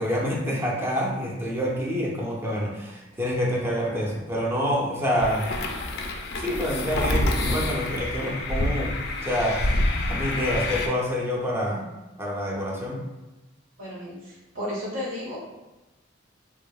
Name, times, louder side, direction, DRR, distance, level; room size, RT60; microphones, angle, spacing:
voice 1, 0.0-5.5 6.4-9.0 9.2-11.8 12.2-13.0, equal, 10° right, -3 dB, 0.4 m, -27 dB
sound 1, 5.2-10.9, left 1 dB, 60° left, 0.3 m, -27 dB
voice 2, 13.8-15.5, left 1 dB, 80° right, -6 dB, 0.8 m, -34 dB
2.6 x 2.4 x 2.2 m, 1.0 s
head